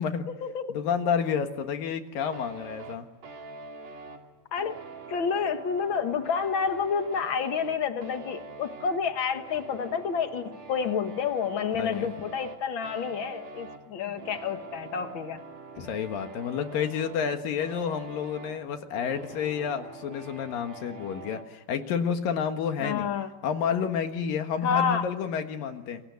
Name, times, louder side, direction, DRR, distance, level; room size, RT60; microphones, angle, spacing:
voice 1, 0.7-3.1 11.8-12.1 14.1-14.2 15.8-23.1 23.4-26.0, left 7 dB, 75° left, 7 dB, 3.2 m, -30 dB
sound 1, 2.3-21.5, right 3 dB, 50° right, 3.7 m, -44 dB
voice 2, 5.1-15.4 22.8-23.3 24.6-25.0, left 6 dB, 55° left, 8 dB, 1.5 m, -29 dB
28.5 x 24.0 x 8.3 m, 1.2 s
omnidirectional pair, 4.1 m